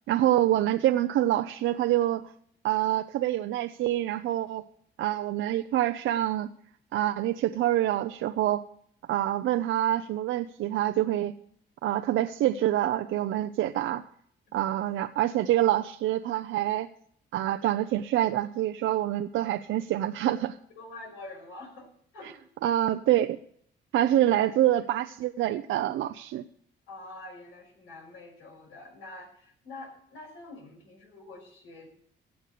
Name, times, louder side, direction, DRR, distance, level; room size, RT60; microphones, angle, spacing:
voice 1, 0.1-2.3 2.6-4.6 5.0-6.5 6.9-8.6 9.1-11.3 11.8-14.0 14.5-16.9 17.3-20.6 22.6-23.4 23.9-26.4, right 13 dB, 80° right, 8 dB, 0.6 m, -26 dB
voice 2, 20.8-22.4 24.7-24.8 26.9-31.9, left 2 dB, 80° left, 1 dB, 5.9 m, -46 dB
16.0 x 8.1 x 6.7 m, 0.64 s
cardioid pair, 90°, 20 cm